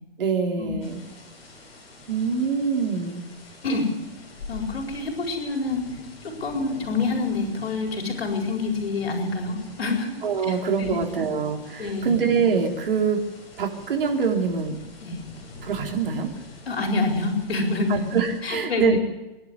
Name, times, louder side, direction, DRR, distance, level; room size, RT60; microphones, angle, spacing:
voice 1, 0.2-1.0 2.1-3.2 10.2-13.2 13.6-14.8 15.6-16.3 17.9-19.0, right 6 dB, 65° right, 2 dB, 3.9 m, -24 dB
sound 1, 0.8-18.4, left 2 dB, 30° left, 7.5 m, -45 dB
voice 2, 4.5-5.8 6.2-10.1 10.8-11.1 11.8-12.2 15.0-15.2 16.7-18.0 18.4-19.0, left 3 dB, 75° left, 2 dB, 4.7 m, -27 dB
24.0 x 11.5 x 9.7 m, 1.1 s
hypercardioid pair, 170°, 30 cm